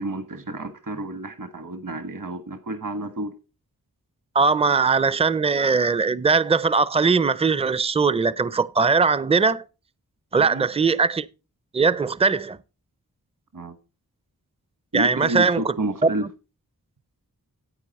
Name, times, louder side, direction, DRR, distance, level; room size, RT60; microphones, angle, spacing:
voice 1, 0.0-3.3 10.3-10.7 13.5-13.8 14.9-16.3, right 2 dB, 60° right, 1.4 m, -30 dB
voice 2, 4.3-9.6 10.3-11.3 11.7-12.6 14.9-15.6, right 4 dB, 15° right, 0.5 m, -20 dB
9.8 x 8.4 x 4.1 m
wide cardioid pair, 65°, 36 cm